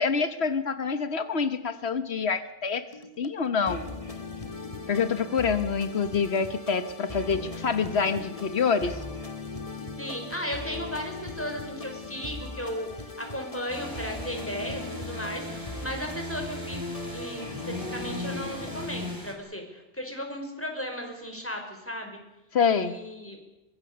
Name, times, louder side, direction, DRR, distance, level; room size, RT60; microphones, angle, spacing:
voice 1, 0.0-2.9 3.2-3.8 4.9-9.0 22.5-23.0, left 5 dB, 80° left, 11 dB, 1.5 m, -26 dB
sound 1, 2.9-18.9, left 3 dB, 35° left, 2.1 m, -39 dB
voice 2, 10.0-22.2 22.7-23.4, equal, 10° left, 3 dB, 5.2 m, -36 dB
sound 2, 13.7-19.3, left 1 dB, 20° right, 4.7 m, -37 dB
24.0 x 23.5 x 6.9 m, 0.94 s
omnidirectional pair, 1.1 m